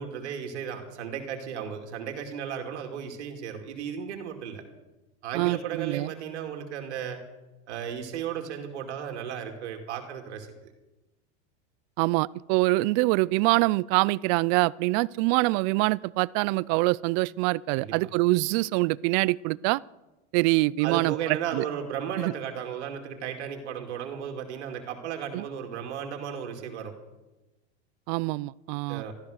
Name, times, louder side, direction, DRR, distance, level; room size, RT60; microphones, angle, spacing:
voice 1, 0.0-4.6 5.2-7.2 7.7-10.7 17.8-18.1 20.8-26.9 28.9-29.1, right 8 dB, 85° right, 4 dB, 2.4 m, -35 dB
voice 2, 5.3-6.1 12.0-19.8 20.3-21.6 22.2-22.3 25.3-25.4 28.1-29.0, right 22 dB, 45° right, 22 dB, 0.4 m, -25 dB
14.0 x 13.5 x 6.5 m, 1.1 s
supercardioid pair, 135°, 33 cm